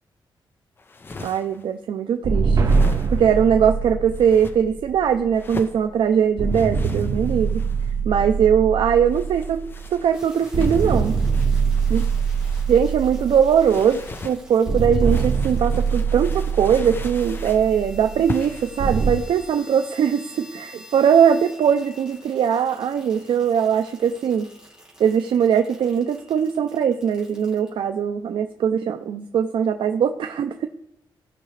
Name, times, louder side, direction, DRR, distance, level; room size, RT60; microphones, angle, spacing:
sound 1, 0.8-1.7 2.5-3.4 4.1-4.6 5.3-5.8 6.5-8.0 9.0-12.7 13.6-14.4 15.0-17.7 18.3-18.7, left 3 dB, 25° left, 0.5 m, -39 dB
voice 1, 1.2-2.6 3.1-7.6 8.0-9.6 9.9-11.1 11.9-12.1 12.7-24.5 25.0-30.7, right 8 dB, 85° right, 7 dB, 0.5 m, -20 dB
sound 2, 2.2-5.8 6.4-10.2 10.5-14.1 14.7-19.1, right 5 dB, 45° right, 0.9 m, -24 dB
sound 3, 10.1-27.7, equal, 10° right, 2.5 m, -48 dB
16.5 x 5.7 x 3.2 m, 0.79 s
wide cardioid pair, 180°, 9 cm